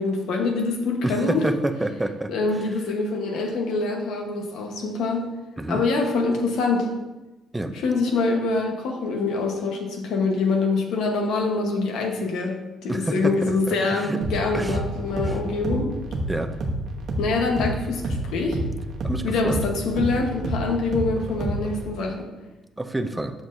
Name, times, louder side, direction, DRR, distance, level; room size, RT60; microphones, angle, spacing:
voice 1, 0.0-1.4 2.3-5.3 5.7-6.9 7.7-15.9 17.2-18.6 19.2-22.3, left 3 dB, 75° left, 2 dB, 1.0 m, -25 dB
voice 2, 1.0-2.3 5.6-5.8 7.5-7.7 12.9-14.2 14.5-14.8 15.3-15.4 16.3-16.5 19.0-19.6 22.8-23.3, right 1 dB, 5° right, 7 dB, 0.4 m, -28 dB
sound 1, 14.2-21.9, right 1 dB, 50° right, 0.9 m, -29 dB
7.2 x 6.1 x 2.6 m, 1.1 s
cardioid pair, 155°, 0 cm